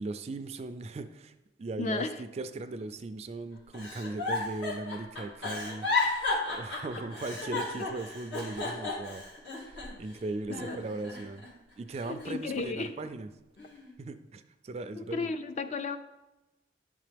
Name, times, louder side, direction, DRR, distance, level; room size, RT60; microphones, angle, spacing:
voice 1, 0.0-1.3 1.6-9.3 9.6-11.4 11.8-13.3 14.0-15.3, right 2 dB, 35° right, 10 dB, 0.3 m, -38 dB
voice 2, 1.8-2.2 10.5-10.8 12.0-12.9 15.0-16.0, left 3 dB, 40° left, 10 dB, 0.4 m, -34 dB
Giggle, 3.7-10.1 10.5-11.5 11.9-13.0 13.6-13.9, left 3 dB, 75° left, 2.5 m, -34 dB
10.5 x 3.6 x 3.4 m, 1.0 s
head